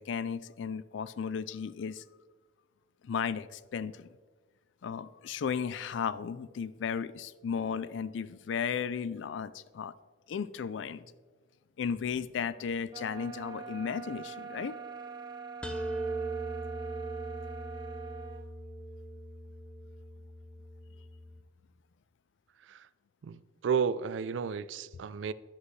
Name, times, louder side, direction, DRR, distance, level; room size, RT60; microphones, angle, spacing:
voice 1, 0.0-2.0 3.0-4.1 4.8-9.9 10.3-11.0 11.8-14.8, left 6 dB, 75° left, 0.4 m, -35 dB
sound 1, 12.9-18.5, right 5 dB, 25° right, 0.9 m, -44 dB
sound 2, 15.6-21.4, right 2 dB, 5° left, 0.6 m, -39 dB
voice 2, 23.2-25.3, right 6 dB, 75° right, 0.4 m, -32 dB
9.9 x 8.2 x 3.2 m
head